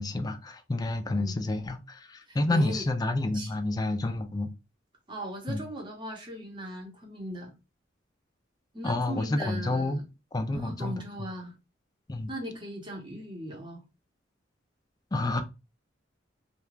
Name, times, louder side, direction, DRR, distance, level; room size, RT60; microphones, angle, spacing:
voice 1, 0.0-4.5 5.5-5.6 8.8-10.0 10.3-11.0 12.1-12.3 15.1-15.4, left 2 dB, 20° left, 0.3 m, -29 dB
voice 2, 2.3-2.8 3.3-3.5 5.1-7.5 8.7-10.0 10.5-11.5 12.3-13.8, equal, 25° right, 0.8 m, -38 dB
2.4 x 2.2 x 3.0 m
head